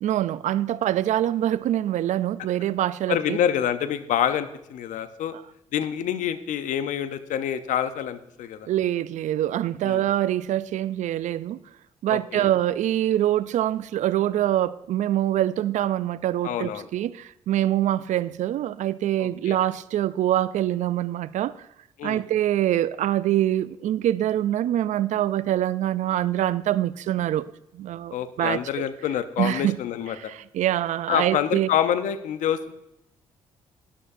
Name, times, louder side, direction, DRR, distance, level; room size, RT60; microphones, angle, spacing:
voice 1, 0.0-3.4 5.3-5.4 8.7-11.6 12.0-21.5 22.0-28.8 29.4-29.8 30.2-31.7, right 12 dB, 65° right, 0.4 m, -25 dB
voice 2, 3.1-5.3 5.7-8.7 9.8-10.0 12.1-12.5 16.4-16.9 19.2-19.6 22.0-22.2 28.1-30.3 31.1-32.7, left 9 dB, 70° left, 0.7 m, -27 dB
12.5 x 11.0 x 2.6 m
supercardioid pair, 55°, 13 cm